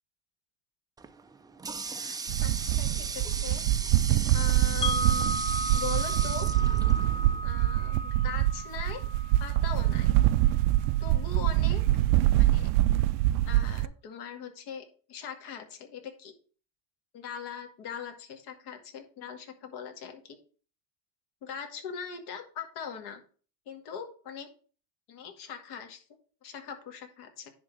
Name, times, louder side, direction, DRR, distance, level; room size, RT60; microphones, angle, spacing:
Water tap faucet, 1.0-7.5, right 4 dB, 10° right, 0.4 m, -37 dB
voice 1, 1.8-3.6 4.3-6.5 7.4-9.0 9.4-10.2 11.0-11.8 12.4-12.7 13.5-16.3 17.1-20.4 21.4-23.2 23.7-24.5 25.1-26.0 26.4-27.5, left 7 dB, 55° left, 5 dB, 2.2 m, -41 dB
sound 1, 2.3-13.9, right 15 dB, 85° right, 0.6 m, -25 dB
Wind chime, 4.8-10.8, equal, 10° left, 0.9 m, -35 dB
10.0 x 3.8 x 6.3 m, 0.39 s
supercardioid pair, 125°, 45 cm